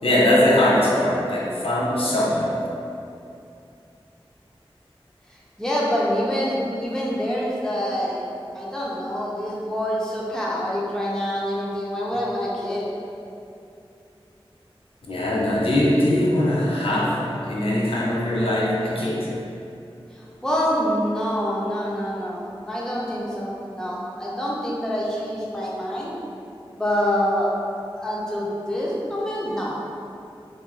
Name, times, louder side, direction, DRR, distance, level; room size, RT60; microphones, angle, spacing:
voice 1, 0.0-2.5 15.1-19.3, left 1 dB, 70° left, -5 dB, 0.4 m, -21 dB
voice 2, 5.6-8.2 8.5-12.9 20.4-26.1 26.7-27.5 28.0-29.8, equal, 5° left, -6 dB, 0.5 m, -26 dB
2.9 x 2.4 x 2.3 m, 2.6 s
wide cardioid pair, 40°, 10 cm